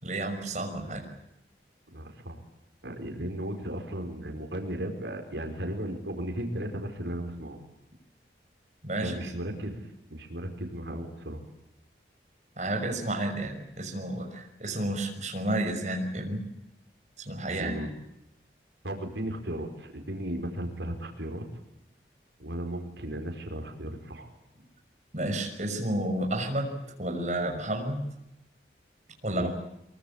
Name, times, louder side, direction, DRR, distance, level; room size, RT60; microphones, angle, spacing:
voice 1, 0.0-1.1 8.8-9.2 12.6-16.4 17.2-17.9 25.1-26.7 27.0-28.1 29.2-29.6, right 1 dB, 40° right, 3 dB, 6.1 m, -31 dB
voice 2, 1.9-2.4 2.8-7.6 9.0-11.4 17.5-17.9 18.8-21.4 22.4-24.3 29.3-29.5, right 1 dB, 85° right, 4 dB, 4.8 m, -35 dB
24.0 x 24.0 x 8.7 m, 0.87 s
head